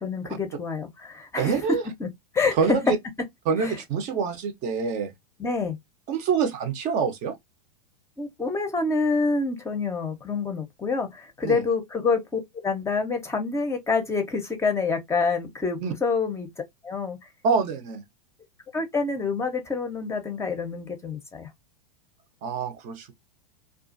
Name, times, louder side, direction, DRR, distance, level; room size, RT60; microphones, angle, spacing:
voice 1, 0.0-1.6 2.0-2.1 2.3-2.8 3.6-3.8 5.4-5.8 8.2-16.5 16.8-17.2 18.7-21.5, left 4 dB, 15° left, 0.6 m, -27 dB
voice 2, 1.4-1.8 2.5-3.0 3.5-5.1 6.1-7.4 11.4-11.6 15.8-15.9 17.4-18.0 22.4-23.1, right 5 dB, 40° right, 0.6 m, -26 dB
2.4 x 2.3 x 2.5 m
hypercardioid pair, 105°, 19 cm